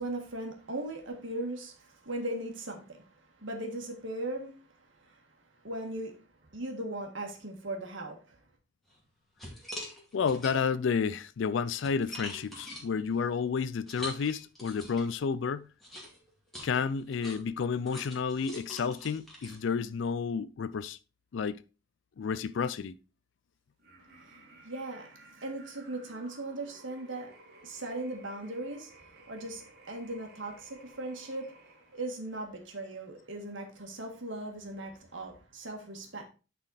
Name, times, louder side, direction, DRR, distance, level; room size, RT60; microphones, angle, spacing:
voice 1, 0.0-5.2 5.6-6.1 6.5-8.4 24.2-31.6 31.9-36.3, right 2 dB, 70° right, 1.8 m, -39 dB
sound 1, 8.9-9.0 9.4-10.9 11.4-15.2 15.8-20.2, equal, ahead, 2.2 m, -45 dB
voice 2, 10.1-15.7 16.6-21.0 21.3-21.6 22.2-23.0, left 6 dB, 65° left, 0.4 m, -31 dB
sound 2, 23.8-32.2, right 2 dB, 50° right, 1.9 m, -56 dB
9.5 x 4.2 x 4.0 m
head